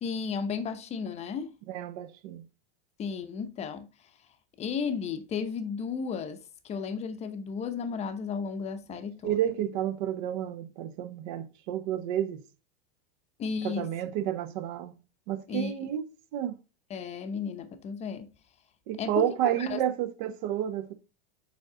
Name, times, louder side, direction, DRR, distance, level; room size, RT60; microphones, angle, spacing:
voice 1, 0.0-1.5 3.0-3.9 4.6-9.4 13.4-13.9 15.5-15.9 16.9-18.3 19.0-19.3 19.6-19.8, left 6 dB, 20° left, 0.8 m, -34 dB
voice 2, 1.7-2.4 9.2-12.4 13.6-14.9 15.3-16.1 16.3-16.6 18.9-20.9, right 11 dB, 50° right, 1.1 m, -30 dB
7.2 x 5.2 x 3.8 m
supercardioid pair, 145°, 30 cm